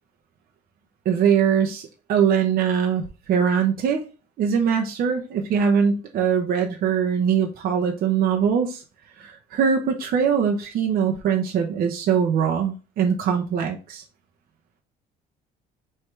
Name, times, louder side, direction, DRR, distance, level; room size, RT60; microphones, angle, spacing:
voice 1, 1.0-3.0 3.3-4.0 4.4-8.8 9.2-14.0, right 7 dB, 60° right, 3 dB, 0.8 m, -22 dB
4.6 x 3.3 x 3.3 m, 0.32 s
cardioid pair, 110°, 17 cm